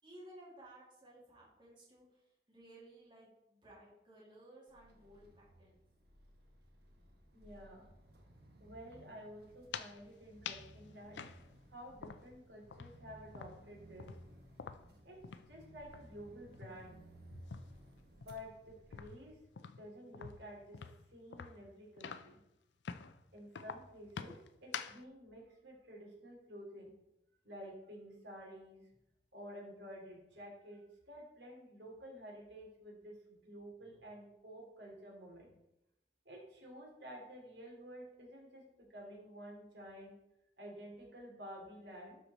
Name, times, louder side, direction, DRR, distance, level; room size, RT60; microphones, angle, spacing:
voice 1, 0.0-5.8, right 1 dB, 25° right, -5 dB, 2.1 m, -58 dB
freightliner going through gears, 4.7-19.4, right 1 dB, 65° right, 1.3 m, -59 dB
voice 2, 7.3-7.9 8.6-11.2 11.7-14.1 15.0-15.2 15.5-17.0 18.2-19.3 19.8-20.8 21.1-22.4 23.3-26.9 27.4-28.9 29.3-35.5 36.2-38.6 38.9-40.1 40.6-42.2, equal, 85° right, -2 dB, 2.6 m, -51 dB
sound 1, 9.5-10.0 10.4-10.7 11.1-12.4 12.7-15.6 15.8-16.1 16.5-17.8 18.2-22.4 22.8-23.2 23.5-25.0, left 6 dB, 85° left, 0.5 m, -47 dB
12.0 x 4.6 x 4.0 m, 0.86 s
head